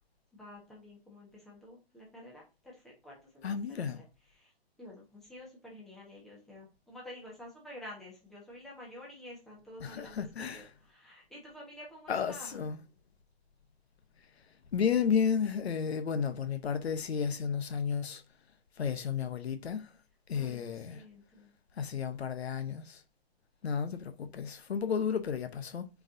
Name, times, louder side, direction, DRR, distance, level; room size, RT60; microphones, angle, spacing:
voice 1, 0.3-4.0 4.3-4.5 4.8-12.6 20.3-21.5, left 1 dB, ahead, 1.3 m, -50 dB
voice 2, 3.4-4.0 9.8-10.7 12.1-12.8 14.7-18.2 18.8-19.9 20.3-21.0 21.8-23.0 23.6-25.9, left 7 dB, 85° left, 1.0 m, -32 dB
7.7 x 4.8 x 2.7 m
hypercardioid pair, 165°, 31 cm